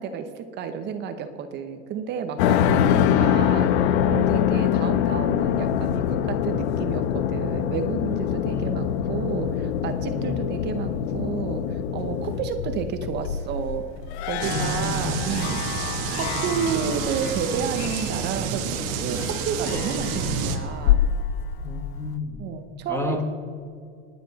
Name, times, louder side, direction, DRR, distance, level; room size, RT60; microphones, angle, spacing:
voice 1, 0.0-13.9 14.3-15.6 16.1-21.0 22.4-23.2, right 7 dB, 30° right, 8 dB, 0.9 m, -31 dB
sound 1, 2.4-22.1, left 9 dB, 65° left, 0.9 m, -25 dB
voice 2, 8.5-8.9 10.1-10.5 14.5-15.1 21.6-22.4 22.9-23.2, left 3 dB, 5° left, 4 dB, 1.1 m, -32 dB
sound 2, 14.4-20.6, right 7 dB, 45° right, 1.4 m, -29 dB
27.5 x 10.0 x 4.1 m, 2.4 s
supercardioid pair, 160°, 36 cm